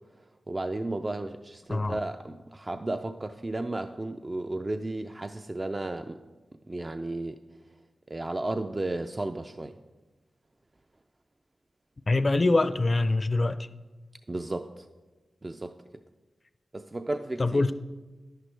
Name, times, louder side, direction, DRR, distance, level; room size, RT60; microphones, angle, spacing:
voice 1, 0.5-6.2 6.7-7.4 8.1-9.8 14.3-14.9 15.4-15.8 16.7-17.6, right 2 dB, 35° right, 0.4 m, -33 dB
voice 2, 1.7-2.0 12.1-13.7 17.4-17.7, left 2 dB, 45° left, 0.5 m, -24 dB
10.5 x 9.1 x 3.3 m
cardioid pair, 45°, 0 cm